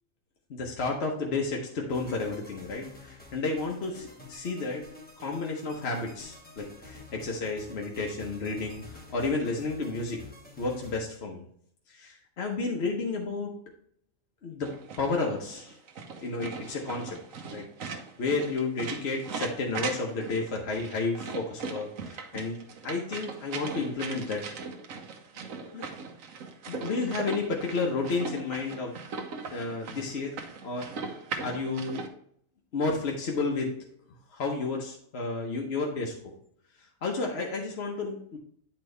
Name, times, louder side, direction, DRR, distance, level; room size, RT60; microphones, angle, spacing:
voice 1, 0.5-4.8 5.2-10.2 10.6-11.4 11.9-13.5 14.4-14.7 15.0-15.8 16.2-17.2 17.5-22.6 22.8-24.5 25.7-25.8 26.7-29.0 29.5-30.3 30.6-30.9 31.4-32.0 32.7-33.9 34.3-36.3 37.0-38.4, left 3 dB, 55° left, 0 dB, 1.1 m, -31 dB
sound 1, 1.9-11.0, left 3 dB, 10° left, 1.0 m, -49 dB
sound 2, 14.6-32.1, right 4 dB, 80° right, 1.2 m, -39 dB
9.2 x 4.5 x 3.2 m, 0.64 s
omnidirectional pair, 1.4 m